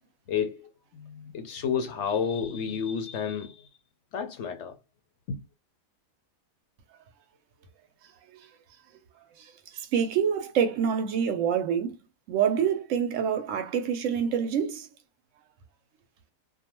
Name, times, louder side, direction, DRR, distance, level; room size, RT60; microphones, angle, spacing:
voice 1, 0.3-3.7 4.1-4.8 5.3-5.4, left 7 dB, 65° left, 0.8 m, -31 dB
voice 2, 9.4-12.0 12.3-14.9, right 8 dB, 70° right, 0.9 m, -26 dB
2.5 x 2.2 x 2.9 m
omnidirectional pair, 1.5 m